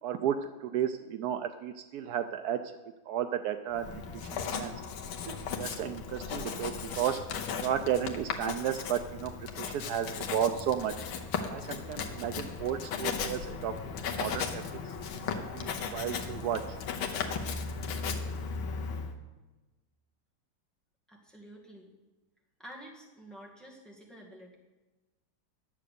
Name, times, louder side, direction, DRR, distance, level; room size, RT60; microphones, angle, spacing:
voice 1, 0.0-2.6 3.1-4.7 5.3-7.2 7.6-10.9 11.5-13.7 14.0-14.6 15.3-16.8, right 9 dB, 90° right, 9 dB, 0.8 m, -33 dB
Writing, 3.7-19.1, left 6 dB, 75° left, 1.8 m, -36 dB
voice 2, 21.1-21.9 22.6-24.6, equal, ahead, -2 dB, 1.9 m, -49 dB
11.0 x 7.7 x 6.7 m, 1.1 s
omnidirectional pair, 2.3 m